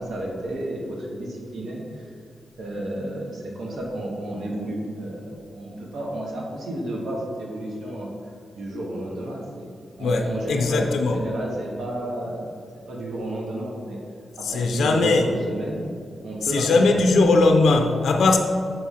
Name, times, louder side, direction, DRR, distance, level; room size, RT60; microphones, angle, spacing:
voice 1, 0.0-2.1 2.6-8.1 8.5-9.7 10.0-14.0 14.4-15.9 16.2-17.2, right 1 dB, 75° right, -2 dB, 1.2 m, -31 dB
voice 2, 10.0-11.2 14.4-15.3 16.5-18.4, left 3 dB, 80° left, 3 dB, 0.5 m, -19 dB
6.6 x 4.2 x 3.6 m, 2.3 s
cardioid pair, 75°, 0 cm